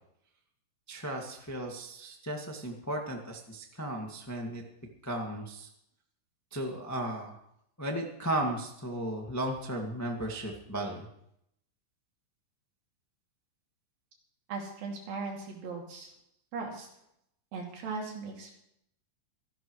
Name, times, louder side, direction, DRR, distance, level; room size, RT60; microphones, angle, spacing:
voice 1, 0.9-4.6 5.0-5.7 6.5-7.4 7.8-11.1, right 1 dB, 10° left, 1 dB, 0.8 m, -35 dB
voice 2, 14.5-16.1 16.5-16.9 17.5-18.5, right 4 dB, 75° right, 0 dB, 4.4 m, -38 dB
26.0 x 11.5 x 3.2 m, 0.74 s
omnidirectional pair, 4.2 m